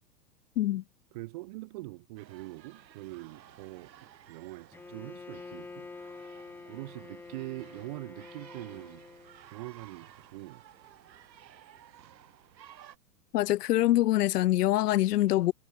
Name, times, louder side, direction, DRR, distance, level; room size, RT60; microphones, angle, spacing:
voice 1, 1.1-5.9 6.7-9.0 9.5-10.6, right 21 dB, 25° right, 0.8 m, -43 dB
sound 1, 2.2-13.0, right 10 dB, 85° right, 2.1 m, -55 dB
Bowed string instrument, 4.7-9.5, left 4 dB, 5° left, 1.3 m, -47 dB
voice 2, 13.3-15.5, left 15 dB, 65° left, 0.7 m, -24 dB
hypercardioid pair, 165°, 50 cm